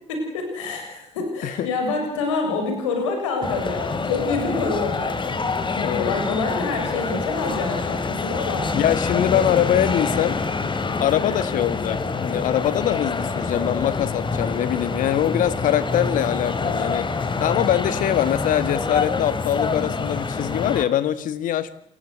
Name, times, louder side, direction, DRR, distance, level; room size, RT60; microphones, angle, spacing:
voice 1, 0.1-5.4 6.0-8.7, left 3 dB, 75° left, 3 dB, 6.8 m, -27 dB
sound 1, 3.4-20.8, left 4 dB, 30° left, 3.2 m, -26 dB
voice 2, 5.8-6.1 8.7-10.4 11.0-17.1 17.4-21.7, left 11 dB, 55° left, 15 dB, 1.7 m, -23 dB
28.0 x 21.5 x 8.1 m, 0.73 s
figure-of-eight pair, 50°, 16 cm